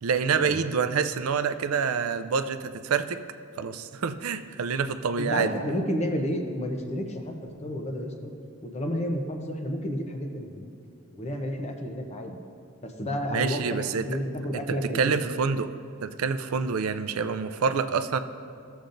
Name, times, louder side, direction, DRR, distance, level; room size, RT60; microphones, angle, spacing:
voice 1, 0.0-3.2 3.6-5.6 13.3-14.1 14.7-15.7 16.0-18.2, right 6 dB, 85° right, 11 dB, 0.4 m, -27 dB
voice 2, 5.2-7.3 7.6-8.3 8.6-10.7 11.1-12.4 12.8-15.2, equal, 30° left, 4 dB, 0.7 m, -31 dB
15.5 x 7.0 x 2.6 m, 2.3 s
head